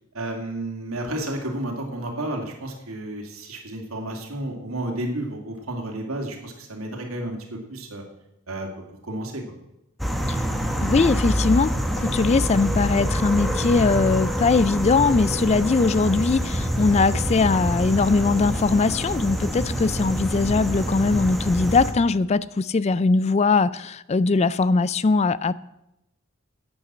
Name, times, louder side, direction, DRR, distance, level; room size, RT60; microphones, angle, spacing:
voice 1, 0.1-8.0 8.5-8.7 9.0-9.4, right 1 dB, 85° right, 2 dB, 2.6 m, -31 dB
sound 1, 10.0-21.9, equal, ahead, 1.2 m, -26 dB
voice 2, 10.8-25.5, left 4 dB, 30° left, 18 dB, 0.3 m, -21 dB
11.0 x 8.7 x 7.5 m, 0.87 s
head